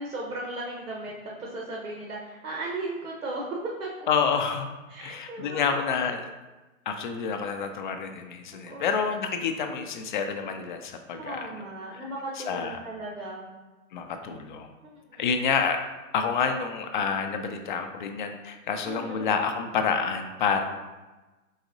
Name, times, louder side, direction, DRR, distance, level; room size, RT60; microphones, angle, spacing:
voice 1, 0.0-3.9 4.9-5.7 8.5-8.9 11.2-13.6 14.8-15.3 18.8-19.3, right 2 dB, 80° right, -2 dB, 1.1 m, -36 dB
voice 2, 4.1-4.7 5.0-6.3 6.9-11.4 12.5-12.8 13.9-14.7 15.2-15.8 16.1-20.6, left 6 dB, 35° left, 6 dB, 0.4 m, -28 dB
5.0 x 4.0 x 2.6 m, 1.2 s
figure-of-eight pair, 115°, 43 cm